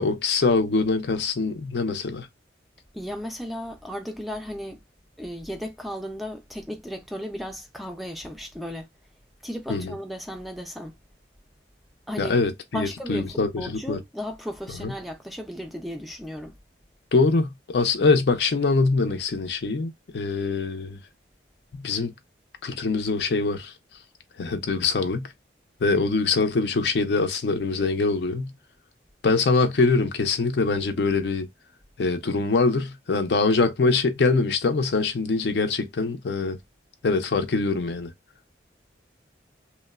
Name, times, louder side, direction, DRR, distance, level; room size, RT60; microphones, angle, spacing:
voice 1, 0.0-2.3 9.7-9.9 12.2-14.0 14.8-14.9 17.1-21.0 21.7-22.1 22.6-23.7 24.4-25.3 25.8-28.5 29.2-31.5 32.0-36.6 37.0-38.1, left 3 dB, 65° left, 0.5 m, -23 dB
voice 2, 2.9-4.8 5.2-8.9 9.4-11.0 12.1-12.3 12.7-16.6, equal, ahead, 0.3 m, -35 dB
3.0 x 2.0 x 2.2 m
head